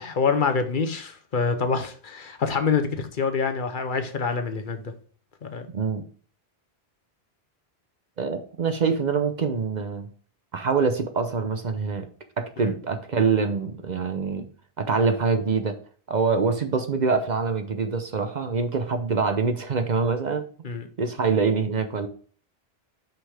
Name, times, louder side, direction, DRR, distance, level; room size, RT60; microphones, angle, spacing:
voice 1, 0.0-4.9 5.4-5.7 12.6-12.7 20.6-20.9, left 5 dB, 55° left, 8 dB, 0.9 m, -26 dB
voice 2, 5.7-6.0 8.2-10.1 10.5-12.1 12.4-14.5 14.8-15.8 16.1-20.4 21.0-22.1, right 5 dB, 50° right, 7 dB, 0.7 m, -25 dB
5.7 x 5.6 x 3.4 m, 0.43 s
omnidirectional pair, 1.1 m